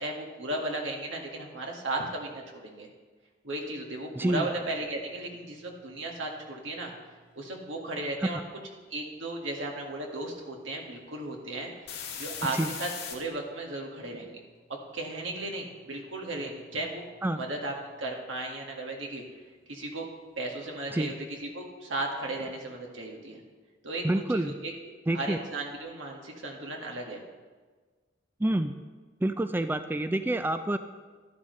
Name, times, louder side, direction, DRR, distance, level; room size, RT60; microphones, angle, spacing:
voice 1, 0.0-2.9 3.4-6.9 7.3-8.4 8.9-11.9 12.2-14.4 14.9-17.0 17.4-19.2 19.7-20.1 20.3-23.4 23.8-24.7 25.1-27.2, right 2 dB, 90° right, 0 dB, 1.8 m, -35 dB
voice 2, 4.2-4.5 12.5-12.7 17.2-17.4 20.9-21.1 24.0-24.5 25.1-25.4 28.4-28.7 29.2-30.8, right 1 dB, 10° right, 9 dB, 0.3 m, -27 dB
sound 1, 5.3-7.5 11.9-13.1 15.6-17.7 18.0-18.1, left 7 dB, 55° left, 1.9 m, -42 dB
12.5 x 11.0 x 3.2 m, 1.4 s
head